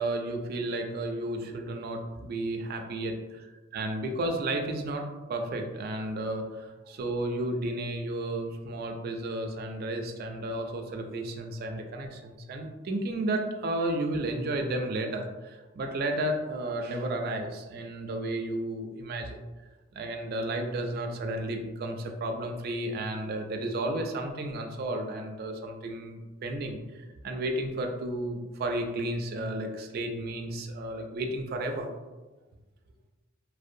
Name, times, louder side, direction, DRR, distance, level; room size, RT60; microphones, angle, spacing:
voice 1, 0.0-3.1 3.7-19.4 19.9-31.9, right 1 dB, 50° right, 4 dB, 0.3 m, -32 dB
2.5 x 2.1 x 2.5 m, 1.2 s
head